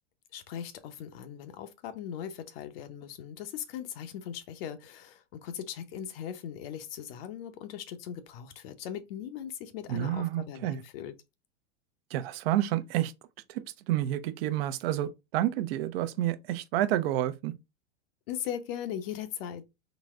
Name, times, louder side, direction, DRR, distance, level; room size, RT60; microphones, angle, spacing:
voice 1, 0.3-11.1 18.3-19.7, left 9 dB, 55° left, 0.7 m, -39 dB
voice 2, 9.9-10.8 12.1-13.1 13.5-17.5, right 13 dB, 60° right, 0.6 m, -29 dB
3.9 x 2.1 x 3.6 m
hypercardioid pair, 130°, 34 cm